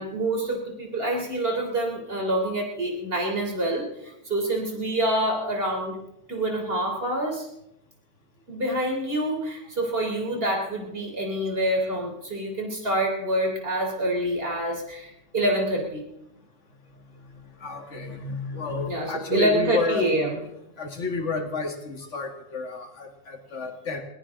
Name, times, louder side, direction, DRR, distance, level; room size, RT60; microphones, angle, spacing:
voice 1, 0.0-3.9 4.3-6.0 6.3-7.5 8.5-16.0 18.8-20.4, right 1 dB, 45° right, 1 dB, 3.6 m, -26 dB
voice 2, 17.6-20.3 20.8-24.0, left 4 dB, 65° left, 5 dB, 2.0 m, -31 dB
20.5 x 18.0 x 3.7 m, 0.84 s
omnidirectional pair, 1.3 m